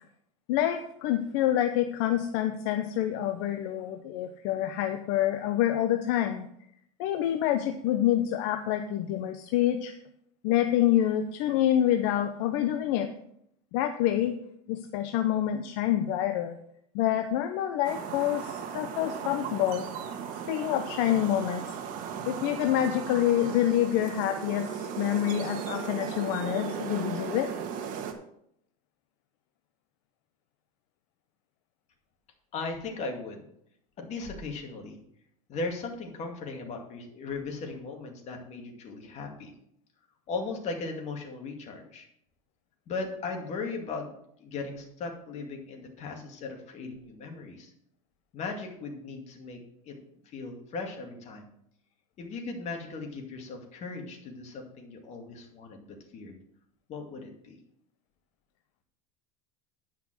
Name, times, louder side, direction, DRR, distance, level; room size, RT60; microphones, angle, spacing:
voice 1, 0.5-6.5 7.0-9.9 10.4-13.1 13.7-14.4 14.7-16.6 16.9-19.9 20.5-21.8 22.3-27.5, left 11 dB, 60° left, 7 dB, 0.8 m, -27 dB
sound 1, 17.8-28.1, right 7 dB, 50° right, 1.5 m, -36 dB
voice 2, 32.5-33.5 34.0-35.0 35.5-39.5 40.3-42.1 42.9-44.1 44.4-47.7 48.3-50.0 50.2-51.5 52.2-56.4 56.9-57.6, left 3 dB, 40° left, 2 dB, 2.3 m, -37 dB
9.9 x 5.9 x 6.2 m, 0.72 s
supercardioid pair, 130°, 18 cm